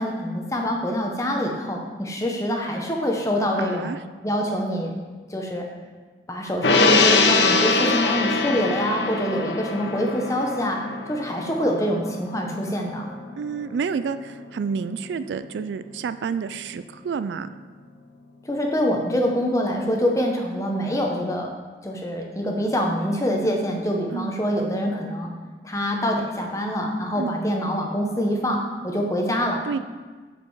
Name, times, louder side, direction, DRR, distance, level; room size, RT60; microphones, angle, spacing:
voice 1, 0.0-3.9 4.2-5.0 5.3-5.7 6.3-10.8 11.1-13.1 18.4-21.5 21.8-25.3 25.6-29.6, equal, 20° left, 1 dB, 0.9 m, -25 dB
voice 2, 3.6-4.0 13.4-17.5 24.1-24.3 27.2-27.4 29.6-29.8, right 6 dB, 80° right, 12 dB, 0.3 m, -29 dB
Gong, 6.6-13.2 13.6-13.7, left 3 dB, 85° left, 0.7 m, -23 dB
6.6 x 5.2 x 4.7 m, 1.4 s
head